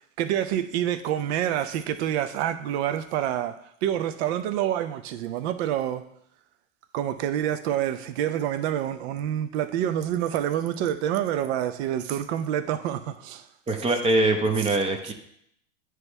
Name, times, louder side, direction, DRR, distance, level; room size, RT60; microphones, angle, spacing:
voice 1, 0.0-3.5 3.8-6.0 6.9-13.4, right 11 dB, 55° right, 0.7 m, -27 dB
voice 2, 13.7-15.1, right 2 dB, 15° right, 0.6 m, -23 dB
9.2 x 3.1 x 3.3 m
hypercardioid pair, 115°, 38 cm